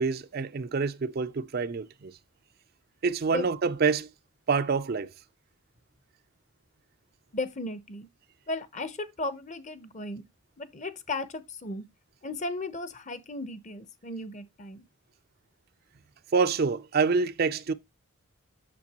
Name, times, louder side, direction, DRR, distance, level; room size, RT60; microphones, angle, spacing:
voice 1, 0.0-2.1 3.0-4.1 4.5-5.1 16.3-17.7, right 4 dB, 45° right, 0.4 m, -26 dB
voice 2, 7.3-8.1 8.5-10.2 10.6-11.9 12.2-14.9, left 2 dB, 35° left, 0.8 m, -35 dB
8.4 x 6.7 x 2.9 m
head